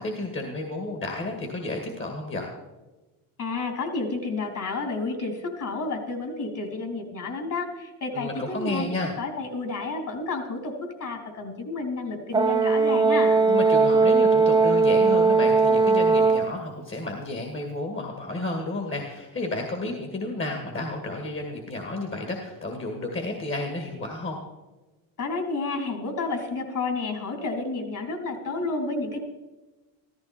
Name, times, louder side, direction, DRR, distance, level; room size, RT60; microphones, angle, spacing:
voice 1, 0.0-2.5 8.1-9.2 13.5-24.4, left 2 dB, 25° left, 3 dB, 2.1 m, -31 dB
voice 2, 3.4-8.8 9.2-10.7 11.0-13.5 25.2-29.2, left 3 dB, 40° left, 4 dB, 3.7 m, -30 dB
Brass instrument, 12.3-16.5, right 4 dB, 10° right, 0.6 m, -19 dB
14.5 x 14.0 x 4.4 m, 1.1 s
supercardioid pair, 100°, 44 cm